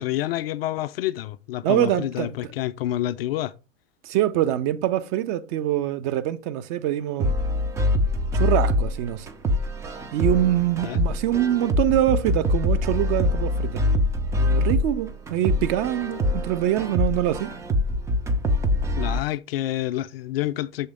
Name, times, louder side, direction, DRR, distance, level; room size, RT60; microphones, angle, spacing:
voice 1, 0.0-3.5 10.8-11.0 19.0-20.9, left 14 dB, 50° left, 0.5 m, -28 dB
voice 2, 1.6-2.3 4.0-7.3 8.3-9.3 10.1-13.8 14.4-17.5, right 12 dB, 40° right, 0.7 m, -24 dB
sound 1, 7.2-19.2, left 1 dB, 10° right, 0.4 m, -24 dB
7.0 x 3.4 x 5.0 m
figure-of-eight pair, 90°, 39 cm